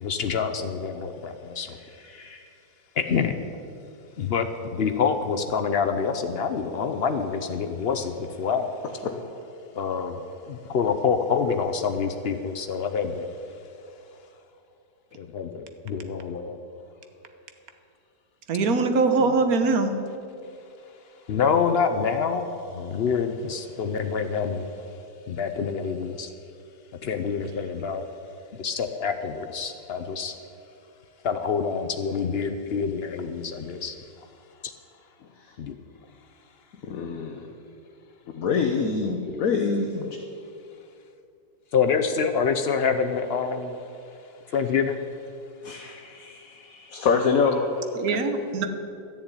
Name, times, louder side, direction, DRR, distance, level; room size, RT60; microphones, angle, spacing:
voice 1, 0.0-1.8 3.0-3.4 4.2-8.7 9.7-10.2 10.5-13.3 15.2-16.6 21.3-22.5 22.7-24.7 25.3-26.3 27.0-28.0 28.6-30.3 31.2-34.0 34.6-34.7 35.6-35.8 39.3-39.4 41.7-43.8 44.5-45.0, left 6 dB, 80° left, 7 dB, 0.5 m, -26 dB
voice 2, 1.8-2.4 9.0-9.1 35.4-35.6 36.8-37.5 38.3-40.1 45.6-47.7, left 5 dB, 60° left, 4 dB, 1.2 m, -26 dB
voice 3, 18.5-19.9 48.0-48.6, right 4 dB, 55° right, 7 dB, 1.4 m, -22 dB
12.5 x 7.2 x 9.7 m, 2.6 s
omnidirectional pair, 1.9 m